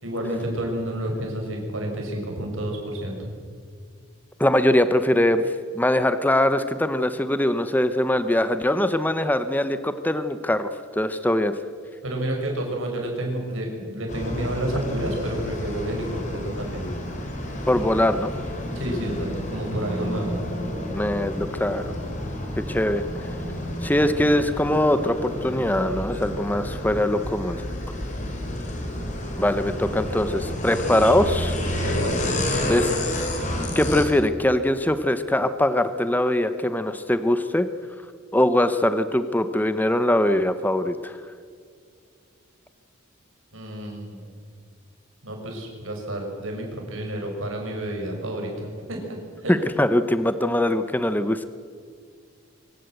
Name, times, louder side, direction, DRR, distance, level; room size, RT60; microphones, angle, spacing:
voice 1, 0.0-3.3 12.0-16.9 18.7-20.3 28.0-28.3 31.0-31.1 31.8-32.4 43.5-44.2 45.2-49.6, right 1 dB, 70° right, 1 dB, 5.9 m, -30 dB
voice 2, 4.4-5.4 5.7-11.5 17.7-18.3 20.9-21.9 22.6-23.0 23.8-27.6 29.4-31.6 32.7-32.9 33.7-37.7 38.3-41.2 49.5-51.5, left 1 dB, 10° left, 10 dB, 0.7 m, -22 dB
sound 1, 14.1-34.0, left 1 dB, 35° left, 3.7 m, -30 dB
24.5 x 15.0 x 7.9 m, 2.2 s
head